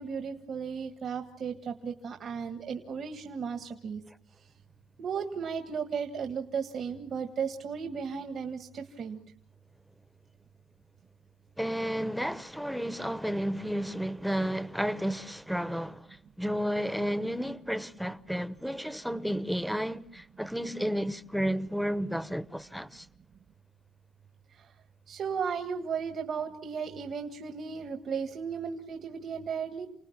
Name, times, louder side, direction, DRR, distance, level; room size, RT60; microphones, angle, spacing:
voice 1, 0.0-4.0 5.0-9.2 24.5-24.7 25.1-29.9, right 6 dB, 60° right, 1.6 m, -35 dB
voice 2, 11.6-16.1 16.4-23.1, equal, ahead, 1.0 m, -32 dB
29.5 x 19.0 x 7.4 m
cardioid pair, 90°, 0 cm